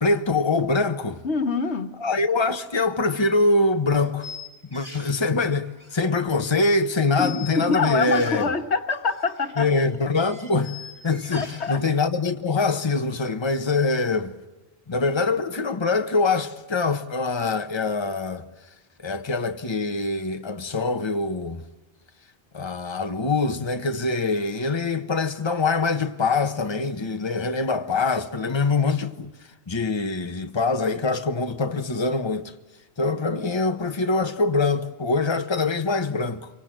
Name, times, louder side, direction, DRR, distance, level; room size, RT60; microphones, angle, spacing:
voice 1, 0.0-1.2 2.0-4.3 4.7-8.4 9.6-14.3 14.9-18.4 19.0-21.6 22.5-29.3 29.7-32.5 33.0-36.5, left 3 dB, 25° left, 1.2 m, -24 dB
voice 2, 1.2-2.0 7.2-9.7 11.3-11.8, left 4 dB, 85° left, 1.8 m, -25 dB
sound 1, 3.0-3.1 4.2-5.2 5.7-6.8 7.1-8.5 8.9-11.7, left 4 dB, 25° right, 5.9 m, -43 dB
27.0 x 24.0 x 7.6 m
omnidirectional pair, 1.1 m